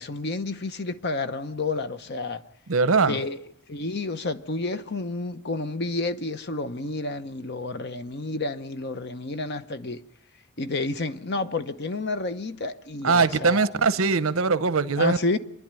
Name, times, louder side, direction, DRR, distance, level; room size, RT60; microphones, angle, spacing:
voice 1, 0.0-2.4 3.0-3.4 3.7-10.0 10.6-13.7 15.0-15.4, left 3 dB, 55° left, 0.9 m, -30 dB
voice 2, 2.7-3.2 13.0-15.2, right 4 dB, 80° right, 0.9 m, -21 dB
26.5 x 11.0 x 9.0 m
head